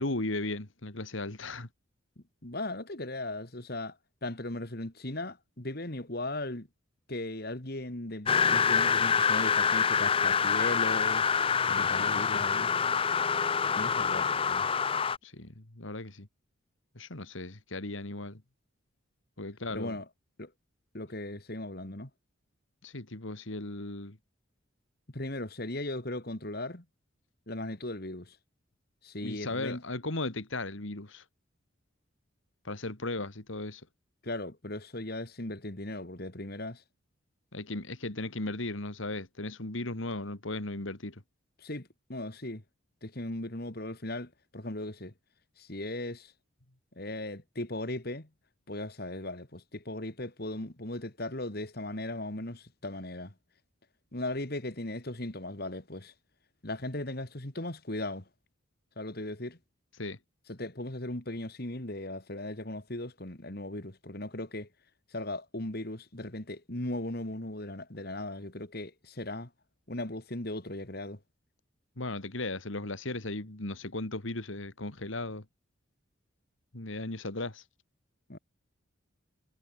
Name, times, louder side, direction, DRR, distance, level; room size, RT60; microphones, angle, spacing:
voice 1, 0.0-1.7 11.7-12.5 14.9-16.3 16.9-18.4 19.4-20.0 22.8-24.2 29.2-31.2 32.6-33.8 37.5-41.2 60.0-60.2 72.0-75.4 76.7-77.6, left 2 dB, 70° left, 2.4 m, -36 dB
voice 2, 2.2-6.7 7.1-12.7 13.7-14.7 19.7-20.1 20.4-20.5 20.9-22.1 25.1-26.8 27.5-28.4 29.0-29.8 34.2-36.8 41.6-42.6 43.0-45.1 45.6-46.3 47.0-48.3 48.7-53.3 54.1-56.1 56.6-58.3 59.0-59.6 60.5-64.7 65.1-69.5 69.9-71.2 78.3-78.4, left 1 dB, 50° left, 2.5 m, -38 dB
sound 1, 8.3-15.2, left 6 dB, 25° left, 0.6 m, -26 dB
head